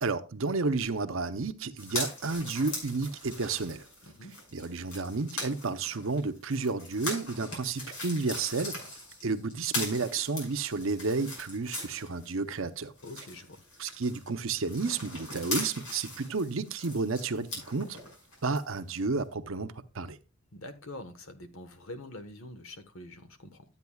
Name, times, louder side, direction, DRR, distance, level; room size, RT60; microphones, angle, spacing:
voice 1, 0.0-3.9 4.5-8.8 9.2-12.9 13.8-18.0 18.4-20.2, right 4 dB, 70° right, 0.8 m, -31 dB
sound 1, 1.8-12.5 12.8-18.6 19.0-19.1, left 1 dB, 90° left, 5.7 m, -40 dB
voice 2, 4.0-4.3 13.0-13.6 20.5-23.6, left 1 dB, 75° left, 1.3 m, -45 dB
12.0 x 8.9 x 2.3 m
head